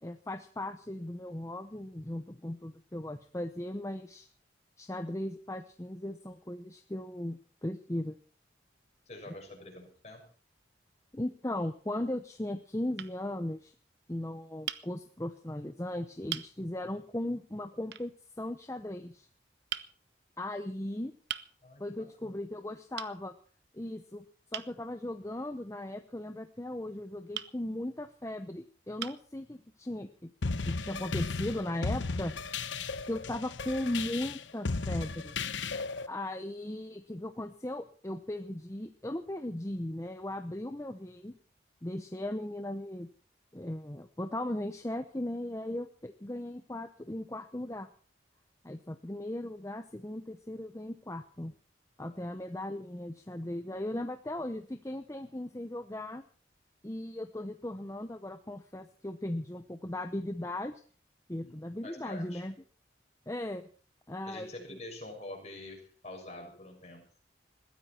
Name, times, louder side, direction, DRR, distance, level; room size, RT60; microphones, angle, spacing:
voice 1, 0.0-4.3 4.8-8.2 11.1-13.7 14.1-19.3 20.4-21.1 21.8-23.3 23.7-24.2 24.5-30.3 30.6-32.3 33.0-35.4 36.1-41.3 41.8-43.1 43.5-47.9 48.6-51.5 52.0-56.2 56.8-60.8 61.3-62.5 63.3-63.6 64.1-64.8, left 1 dB, 15° left, 8 dB, 0.8 m, -37 dB
voice 2, 9.1-10.3 21.6-22.4 52.0-52.2 61.3-62.4 64.2-67.0, left 2 dB, 35° left, 1 dB, 6.8 m, -47 dB
sound 1, 11.2-11.8 12.5-12.7 13.0-13.2 14.7-14.9 15.7-15.8 16.3-16.5 17.9-18.1 19.7-19.9 21.3-21.5 23.0-23.2 24.5-24.7 27.3-27.5 28.4-28.5 29.0-29.3, right 10 dB, 70° right, 0.9 m, -39 dB
sound 2, 30.4-36.1, left 4 dB, 90° left, 0.9 m, -35 dB
21.0 x 15.0 x 4.4 m, 0.41 s
head